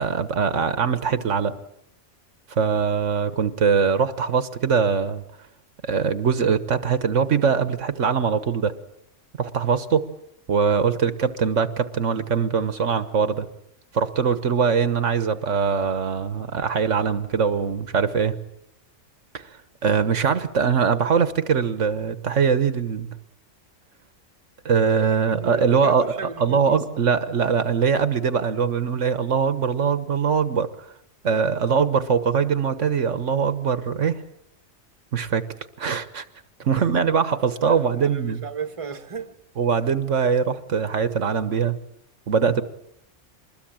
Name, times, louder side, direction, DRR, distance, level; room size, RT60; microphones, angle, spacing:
voice 1, 0.0-1.5 2.5-5.2 5.8-8.7 9.4-10.0 10.5-13.5 13.9-18.3 19.3-19.4 19.8-23.1 24.6-30.7 31.2-34.2 35.1-35.4 35.8-36.2 36.6-38.4 39.6-41.8 42.3-42.6, right 6 dB, 75° right, 1.5 m, -22 dB
voice 2, 25.1-26.8 36.7-37.0 37.6-39.4, right 5 dB, 25° right, 1.4 m, -35 dB
25.0 x 21.0 x 8.7 m
omnidirectional pair, 1.3 m